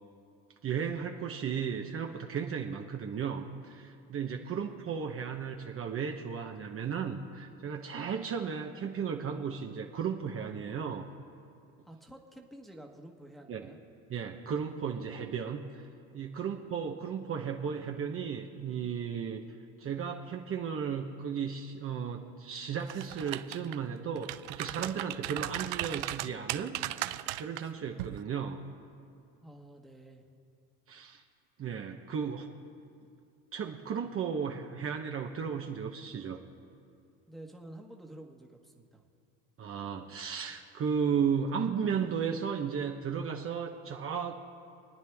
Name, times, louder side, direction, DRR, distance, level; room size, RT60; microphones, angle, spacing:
voice 1, 0.6-11.0 13.5-13.7 14.1-15.8 16.1-19.4 19.8-26.8 27.4-28.6 30.9-31.2 31.6-32.5 33.5-36.4 39.6-44.4, right 7 dB, 35° right, 3 dB, 1.0 m, -35 dB
voice 2, 11.8-13.8 16.3-16.5 29.4-30.3 37.3-39.1, right 1 dB, ahead, 0 dB, 1.4 m, -50 dB
sound 1, 22.8-23.8 24.2-27.6 28.0-28.2, right 17 dB, 85° right, 0.6 m, -36 dB
27.5 x 9.4 x 3.5 m, 2.4 s
supercardioid pair, 115°, 38 cm